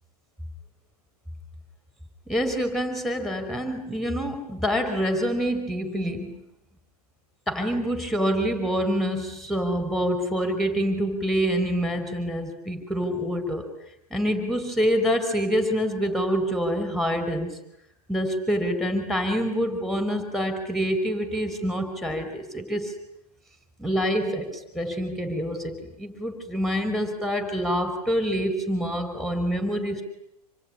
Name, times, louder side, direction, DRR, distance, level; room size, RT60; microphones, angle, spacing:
voice 1, 2.3-6.4 7.5-13.7 14.1-17.6 18.1-22.9 23.8-30.0, equal, ahead, 9 dB, 5.0 m, -26 dB
27.5 x 21.5 x 10.0 m, 0.79 s
hypercardioid pair, 130°, 20 cm